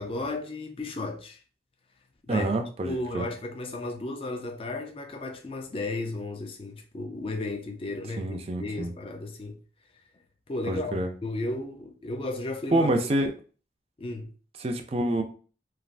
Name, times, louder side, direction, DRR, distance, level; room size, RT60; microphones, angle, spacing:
voice 1, 0.0-1.4 2.3-2.5 2.8-9.6 10.5-12.9 14.0-14.3, left 2 dB, 30° left, 0.4 m, -34 dB
voice 2, 2.3-3.3 8.2-8.9 10.7-11.1 12.7-13.3 14.6-15.2, right 1 dB, 35° right, 0.4 m, -27 dB
3.2 x 2.5 x 2.5 m
head